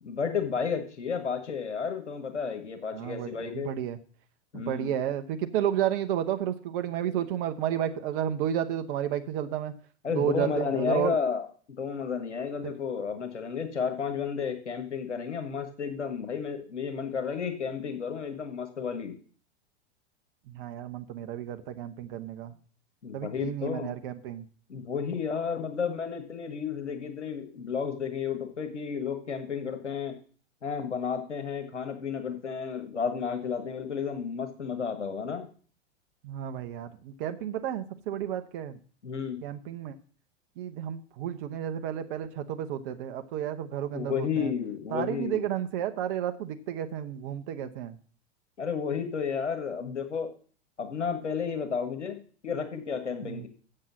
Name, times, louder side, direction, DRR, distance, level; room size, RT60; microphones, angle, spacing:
voice 1, 0.0-3.7 4.5-4.9 10.0-11.4 11.8-19.2 23.0-23.9 24.7-30.2 30.6-35.5 39.0-39.4 43.9-45.4 48.6-50.3 50.8-53.5, left 6 dB, 85° left, 7 dB, 1.6 m, -32 dB
voice 2, 2.9-4.0 4.5-9.7 10.1-11.2 12.6-12.7 20.5-22.5 23.1-24.5 36.2-38.8 39.4-39.9 40.6-44.5 44.9-48.0 53.2-53.5, right 10 dB, 50° right, 8 dB, 1.0 m, -32 dB
7.7 x 7.6 x 6.2 m, 0.42 s
hypercardioid pair, 95°, 34 cm